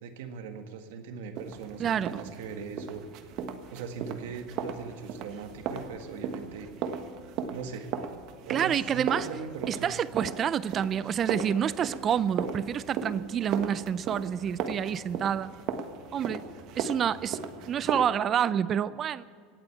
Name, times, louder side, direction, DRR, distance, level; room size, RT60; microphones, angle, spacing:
voice 1, 0.0-3.0 3.7-6.7 7.5-7.9 8.4-9.9, right 6 dB, 85° right, 6 dB, 1.8 m, -40 dB
sound 1, 1.4-18.0, right 6 dB, 55° right, 1.3 m, -37 dB
voice 2, 1.8-2.3 8.5-9.3 9.7-15.5 16.1-16.4 16.7-17.4 17.7-19.2, right 8 dB, 35° right, 18 dB, 0.4 m, -28 dB
17.5 x 8.0 x 8.6 m, 2.1 s
supercardioid pair, 130°, 0 cm